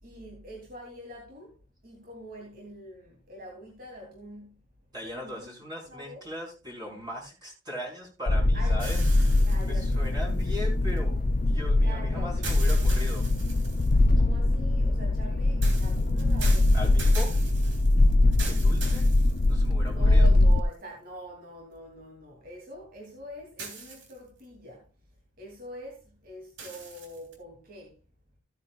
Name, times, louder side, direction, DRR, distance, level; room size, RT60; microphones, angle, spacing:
voice 1, 0.0-4.6 5.0-5.5 5.9-6.2 8.5-8.8 9.4-10.1 11.8-12.6 13.9-16.9 19.8-24.9 25.4-28.0, equal, 50° right, 2.8 m, -44 dB
voice 2, 4.9-9.3 9.6-13.3 16.7-17.3 18.4-19.1 19.5-20.3, left 1 dB, 20° right, 4.8 m, -39 dB
sound 1, 8.3-20.6, left 2 dB, 45° left, 0.5 m, -22 dB
sound 2, 8.8-11.0 12.4-14.1 15.6-19.9 20.5-20.6 23.6-24.4 26.6-27.3, right 4 dB, 70° right, 3.3 m, -41 dB
15.5 x 9.6 x 2.3 m
head